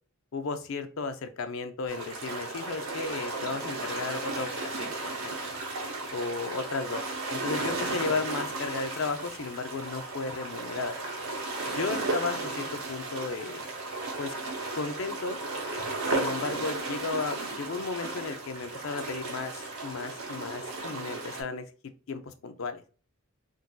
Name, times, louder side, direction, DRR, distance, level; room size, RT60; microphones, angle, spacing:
voice 1, 0.3-4.9 5.2-5.5 6.1-7.0 7.3-11.0 11.7-13.6 14.2-14.3 14.7-15.4 16.0-21.6 22.1-22.8, left 4 dB, 65° left, 9 dB, 0.4 m, -34 dB
sound 1, 1.9-21.4, right 2 dB, 85° right, 0.9 m, -35 dB
3.7 x 2.6 x 2.2 m, 0.37 s
head